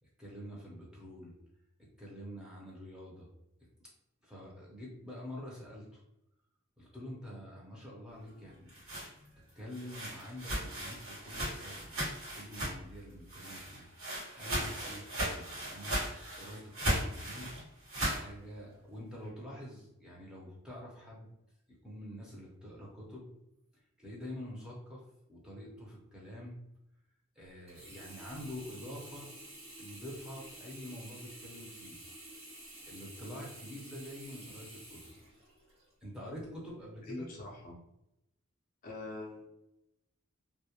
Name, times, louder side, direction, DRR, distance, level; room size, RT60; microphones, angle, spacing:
voice 1, 0.0-1.3 2.0-3.3 4.2-6.0 6.8-8.7 9.5-11.9 12.3-13.9 14.3-16.1 16.4-17.5 18.1-21.3 21.7-23.3 24.0-25.0 25.3-26.6 27.4-29.3 29.8-32.0 32.8-35.1 36.0-37.3, equal, 5° right, -5 dB, 0.6 m, -46 dB
sound 1, 8.5-13.0 13.3-18.2, right 1 dB, 70° right, 1.2 m, -37 dB
Sink (filling or washing), 27.7-35.9 36.5-36.6, right 1 dB, 30° right, 0.9 m, -50 dB
voice 2, 37.0-37.8 38.8-39.5, left 2 dB, 40° left, -2 dB, 0.4 m, -43 dB
2.3 x 2.0 x 2.8 m, 0.86 s
head